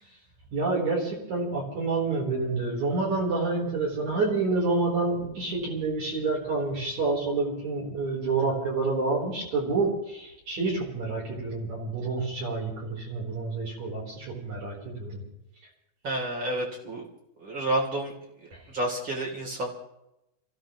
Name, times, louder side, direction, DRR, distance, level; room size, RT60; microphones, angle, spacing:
voice 1, 0.5-15.2 18.5-18.6, right 3 dB, 50° right, -4 dB, 5.2 m, -28 dB
voice 2, 16.0-17.1 17.4-18.1 18.4-19.7, right 1 dB, 30° right, -2 dB, 3.9 m, -30 dB
28.5 x 16.0 x 3.2 m, 0.86 s
omnidirectional pair, 4.4 m